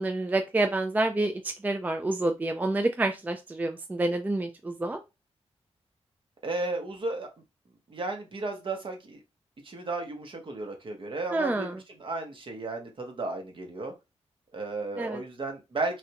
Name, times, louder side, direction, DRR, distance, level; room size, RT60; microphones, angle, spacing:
voice 1, 0.0-5.0 11.3-11.8 15.0-15.2, right 2 dB, 15° right, 0.3 m, -28 dB
voice 2, 6.4-7.3 7.9-9.2 9.6-13.9 14.5-16.0, right 2 dB, 50° right, 0.9 m, -34 dB
3.2 x 2.5 x 2.8 m
wide cardioid pair, 100°, 11 cm